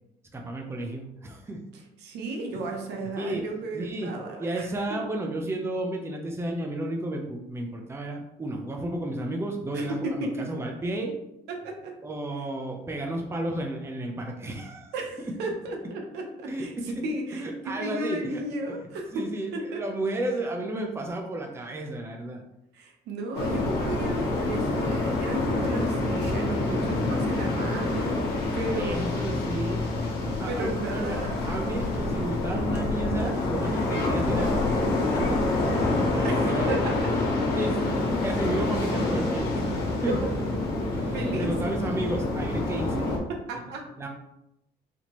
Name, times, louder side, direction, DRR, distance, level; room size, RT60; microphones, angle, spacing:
voice 1, 0.3-1.7 2.5-2.6 3.2-3.5 3.7-4.1 4.4-11.2 12.0-14.9 16.5-17.1 17.3-18.4 18.7-22.4 28.7-29.9 30.4-34.5 35.1-36.8 37.5-40.2 40.9-43.1 44.0-44.1, right 1 dB, 15° right, 2 dB, 0.6 m, -33 dB
voice 2, 2.0-4.7 9.7-10.1 10.4-10.5 11.5-11.9 14.9-19.3 19.5-19.8 22.7-28.3 28.5-29.3 30.2-31.4 36.2-36.9 40.1-40.2 41.1-41.5 43.5-43.8, right 2 dB, 80° right, 2 dB, 0.9 m, -34 dB
sound 1, 23.3-43.2, left 2 dB, 85° left, 1.0 m, -27 dB
4.2 x 2.8 x 3.0 m, 0.85 s
cardioid pair, 110°, 17 cm